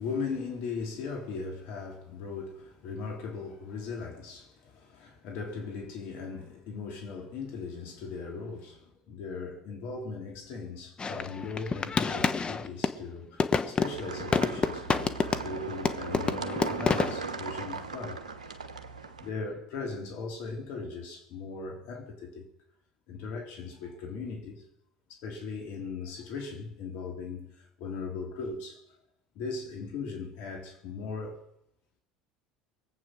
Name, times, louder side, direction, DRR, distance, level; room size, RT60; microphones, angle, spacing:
voice 1, 0.0-14.9 15.4-18.2 19.2-22.5 23.1-24.6 25.1-28.8 29.3-31.4, left 4 dB, 60° left, 3.1 m, -38 dB
sound 1, 11.0-13.0 13.4-15.6 15.9-17.2, left 5 dB, 25° left, 1.2 m, -28 dB
sound 2, 13.8-19.3, right 4 dB, 85° right, 1.2 m, -38 dB
23.0 x 8.6 x 6.5 m
hypercardioid pair, 70°, 4 cm